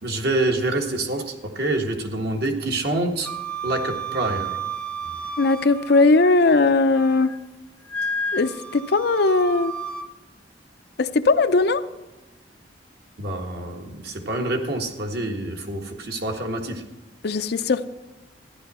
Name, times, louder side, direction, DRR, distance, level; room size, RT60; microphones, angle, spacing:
voice 1, 0.0-3.3 3.6-4.6 5.2-5.3 13.2-16.8, right 2 dB, 60° right, 2 dB, 1.6 m, -26 dB
Wind instrument woodwind instrument, 3.2-6.3 6.7-7.4 7.9-10.1, right 2 dB, 5° left, 0.5 m, -32 dB
voice 2, 5.4-7.4 8.3-9.7 11.0-11.8 17.2-17.9, left 3 dB, 60° left, 10 dB, 0.6 m, -19 dB
14.0 x 11.0 x 4.3 m, 1.1 s
head